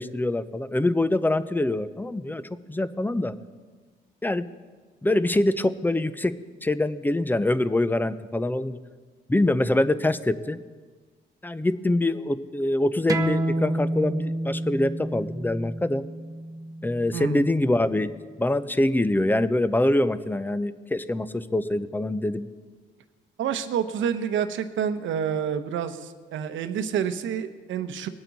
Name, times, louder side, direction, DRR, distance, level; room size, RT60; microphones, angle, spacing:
voice 1, 0.0-2.4 2.7-3.3 4.2-4.4 5.0-6.3 6.6-8.8 9.3-10.6 11.4-16.0 16.8-18.1 18.4-22.5, left 1 dB, 10° left, 14 dB, 0.6 m, -24 dB
sound 1, 13.1-18.3, right 1 dB, 15° right, 0.9 m, -30 dB
voice 2, 17.1-17.5 23.4-28.1, right 8 dB, 75° right, 10 dB, 0.9 m, -28 dB
21.0 x 8.8 x 4.1 m, 1.4 s
cardioid pair, 90°, 20 cm